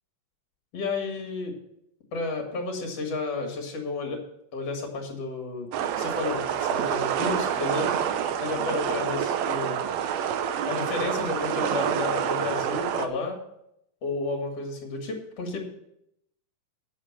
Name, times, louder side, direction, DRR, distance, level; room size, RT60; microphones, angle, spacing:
voice 1, 0.7-1.5 2.1-4.2 4.5-5.7 6.0-7.9 8.4-9.8 10.7-13.4 14.0-15.6, left 3 dB, 50° left, 2 dB, 2.8 m, -31 dB
sound 1, 5.7-13.1, right 8 dB, 75° right, 1.6 m, -27 dB
9.1 x 7.4 x 7.2 m, 0.80 s
omnidirectional pair, 3.8 m